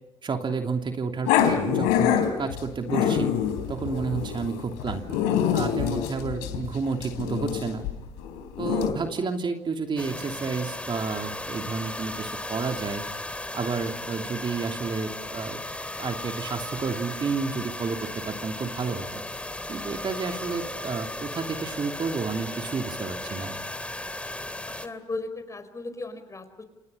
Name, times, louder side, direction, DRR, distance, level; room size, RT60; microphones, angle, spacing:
voice 1, 0.2-3.3 3.7-7.9 8.6-13.0 13.5-15.6 16.0-19.1 19.7-23.6, right 4 dB, 40° right, 4 dB, 3.0 m, -31 dB
Growling, 1.2-8.9, left 9 dB, 80° left, 3.7 m, -25 dB
sound 1, 10.0-24.9, left 1 dB, 10° left, 2.9 m, -36 dB
voice 2, 24.8-26.6, left 3 dB, 25° left, 10 dB, 5.1 m, -36 dB
29.0 x 27.5 x 5.6 m, 1.0 s
hypercardioid pair, 65°, 13 cm